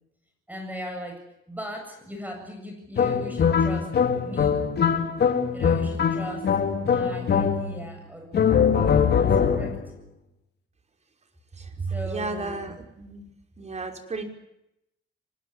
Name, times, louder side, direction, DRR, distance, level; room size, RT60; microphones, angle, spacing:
voice 1, 0.5-3.9 4.2-4.6 5.5-6.5 6.8-9.8 11.8-12.8, equal, 10° right, 4 dB, 7.8 m, -39 dB
sound 1, 3.0-7.9 8.3-9.9, left 7 dB, 55° left, 3.7 m, -22 dB
voice 2, 11.6-13.2 13.6-14.2, right 4 dB, 35° right, 5 dB, 5.5 m, -33 dB
25.5 x 20.0 x 9.8 m, 0.82 s
cardioid pair, 90°, 20 cm